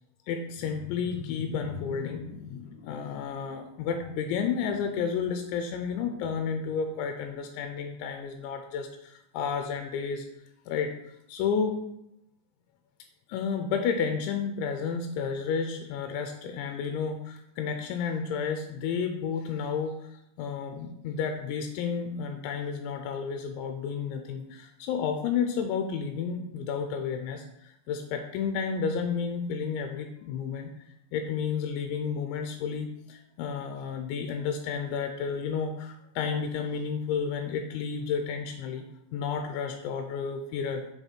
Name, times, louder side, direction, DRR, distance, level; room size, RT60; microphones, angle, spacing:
voice 1, 0.3-10.3 10.7-10.9 11.3-11.8 13.3-30.7 31.1-38.8 39.1-40.8, left 6 dB, 85° left, 5 dB, 2.9 m, -31 dB
6.3 x 5.6 x 4.4 m, 0.80 s
omnidirectional pair, 5.3 m